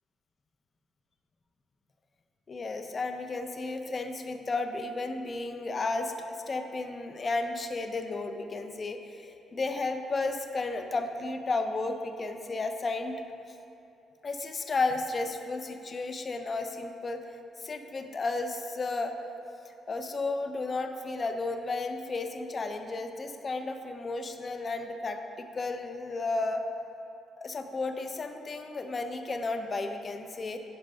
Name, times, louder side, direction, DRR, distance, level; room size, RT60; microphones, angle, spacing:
voice 1, 2.5-13.1 14.2-17.3 17.6-19.2 19.9-26.6 27.4-30.6, left 3 dB, 35° left, 6 dB, 0.7 m, -33 dB
11.0 x 4.6 x 5.4 m, 3.0 s
cardioid pair, 90°, 0 cm